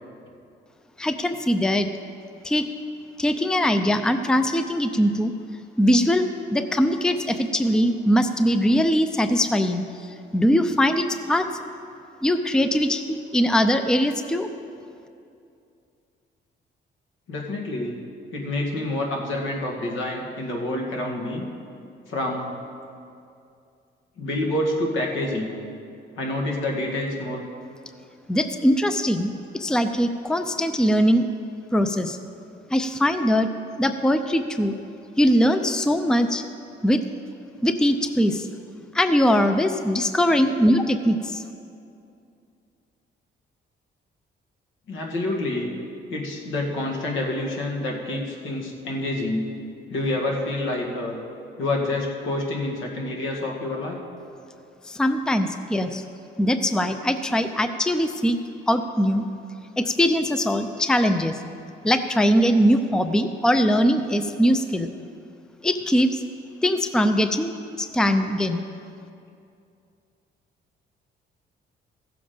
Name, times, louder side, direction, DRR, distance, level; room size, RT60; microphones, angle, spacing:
voice 1, 1.0-1.9 2.4-2.7 3.2-5.3 5.8-11.5 12.2-14.5 28.3-31.3 31.7-32.2 32.7-33.5 33.8-34.8 35.2-36.4 36.8-37.0 37.6-38.5 38.9-41.4 54.8-56.0 56.4-58.4 58.7-59.2 59.8-61.4 61.8-64.9 65.6-66.2 66.6-68.6, equal, 5° left, 8 dB, 0.5 m, -21 dB
voice 2, 17.3-18.0 18.3-21.5 22.1-22.5 24.2-25.5 26.2-27.4 44.9-45.7 46.1-49.4 49.9-51.2 51.6-54.0, left 1 dB, 75° left, 0 dB, 2.0 m, -27 dB
15.5 x 7.0 x 5.1 m, 2.5 s
cardioid pair, 90°, 20 cm